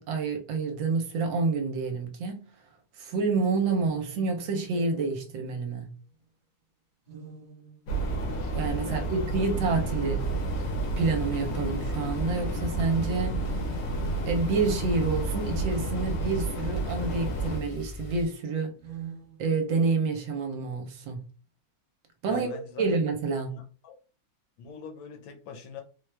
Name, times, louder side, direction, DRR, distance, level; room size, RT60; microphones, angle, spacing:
voice 1, 0.0-2.5 3.0-5.9 8.6-10.2 11.0-13.4 14.3-18.7 19.4-21.2 22.2-22.5 22.8-23.6, right 4 dB, 70° right, 1.3 m, -28 dB
sound 1, 3.7-6.2 7.1-8.3 9.3-11.1 11.9-12.0 13.0-14.1 15.4-17.2 18.7-19.9, right 6 dB, 25° right, 0.8 m, -46 dB
sound 2, 7.9-17.6, right 2 dB, 90° left, 1.9 m, -31 dB
voice 2, 8.8-9.2 22.3-22.9 23.5-23.9 24.6-25.8, left 6 dB, 70° left, 1.4 m, -42 dB
sound 3, 10.2-18.3, left 3 dB, 50° left, 1.0 m, -40 dB
4.5 x 2.3 x 3.3 m
omnidirectional pair, 2.3 m